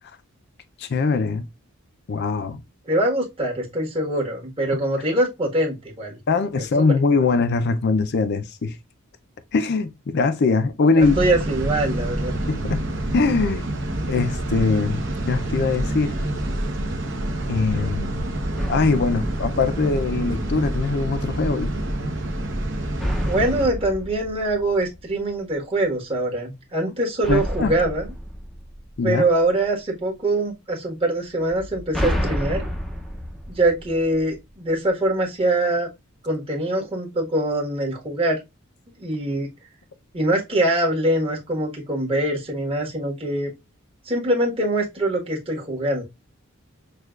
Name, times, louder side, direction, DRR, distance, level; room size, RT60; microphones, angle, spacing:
voice 1, 0.8-1.5 2.1-2.6 6.3-8.8 9.5-11.2 12.5-12.8 13.1-13.7 14.1-16.1 17.5-18.2 18.7-21.7 27.3-27.7 29.0-29.2, left 4 dB, 50° left, 0.4 m, -22 dB
voice 2, 2.9-6.2 6.6-6.8 10.9-12.3 23.3-28.1 29.0-32.7 33.5-35.9 36.2-38.4 39.0-39.5 40.1-43.5 44.0-46.0, right 1 dB, 25° right, 1.4 m, -23 dB
sound 1, 11.0-23.7, right 1 dB, 60° right, 0.9 m, -27 dB
sound 2, 18.6-20.4 23.0-25.4 27.2-29.5 31.5-34.5, equal, ahead, 0.6 m, -30 dB
6.4 x 2.3 x 2.3 m
head